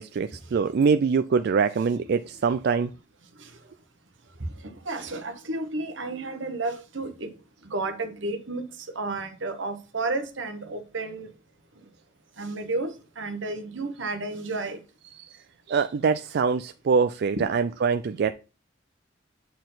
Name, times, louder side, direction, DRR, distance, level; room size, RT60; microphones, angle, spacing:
voice 1, 0.0-2.9 15.2-15.3 15.7-18.3, right 5 dB, 60° right, 0.4 m, -24 dB
voice 2, 4.4-11.3 12.4-14.8 17.4-17.5, right 2 dB, 75° right, 1.1 m, -32 dB
8.3 x 4.4 x 3.9 m
head